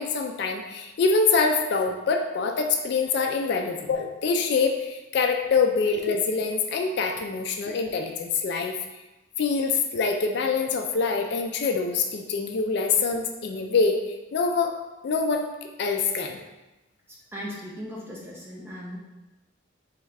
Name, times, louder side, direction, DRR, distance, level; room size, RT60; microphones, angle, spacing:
voice 1, 0.0-8.8 9.4-14.8 15.0-16.4, left 4 dB, 55° left, 3 dB, 0.3 m, -25 dB
voice 2, 17.3-19.0, equal, 10° right, -4 dB, 0.7 m, -37 dB
3.6 x 3.1 x 3.3 m, 1.0 s
head